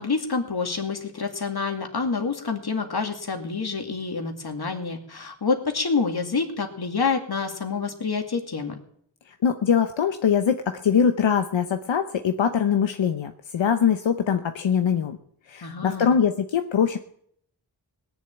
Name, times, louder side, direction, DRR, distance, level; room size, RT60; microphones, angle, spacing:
voice 1, 0.0-8.8 15.6-16.1, left 4 dB, 60° left, 4 dB, 2.4 m, -27 dB
voice 2, 9.4-15.2 15.5-17.0, left 7 dB, 85° left, 7 dB, 0.9 m, -22 dB
18.5 x 7.3 x 9.0 m, 0.68 s
cardioid pair, 50°, 44 cm